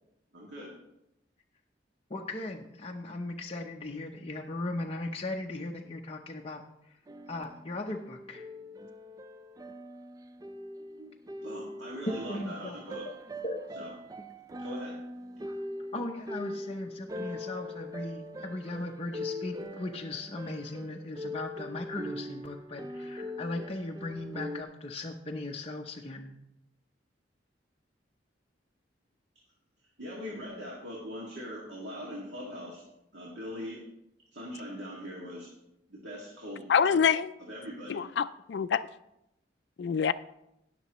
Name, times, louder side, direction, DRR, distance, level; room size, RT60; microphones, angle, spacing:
voice 1, 0.3-0.7 11.4-13.1 13.8-13.9 14.6-15.0 30.0-32.8 33.1-33.8 34.3-35.5 35.9-37.0 37.4-38.0, equal, 80° right, -5 dB, 2.2 m, -41 dB
voice 2, 2.1-7.0 7.3-8.5 12.3-13.1 13.4-13.6 15.9-26.3, left 2 dB, 35° left, 0 dB, 0.7 m, -38 dB
sound 1, 7.1-24.6, left 1 dB, 20° right, 0.4 m, -42 dB
voice 3, 36.7-37.3 37.9-38.9 39.8-40.1, left 7 dB, 65° left, 12 dB, 0.4 m, -26 dB
20.0 x 6.7 x 3.0 m, 0.84 s
head